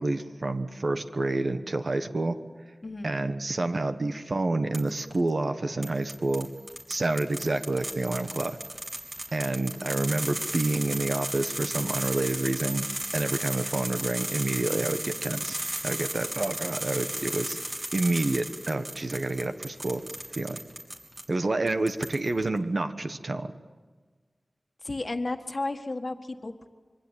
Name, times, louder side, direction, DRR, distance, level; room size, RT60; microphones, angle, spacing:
voice 1, 0.0-2.4 3.0-6.5 6.9-8.6 9.3-12.9 13.1-17.6 17.9-20.0 20.3-20.6 21.3-23.5, right 2 dB, 55° right, 9 dB, 1.3 m, -28 dB
voice 2, 2.8-3.1 24.8-26.7, left 2 dB, 40° left, 6 dB, 1.8 m, -33 dB
sound 1, 4.7-5.2 5.8-21.3 21.7-22.4, right 1 dB, 35° right, 3.4 m, -35 dB
26.0 x 23.5 x 9.0 m, 1.4 s
wide cardioid pair, 80°, 0 cm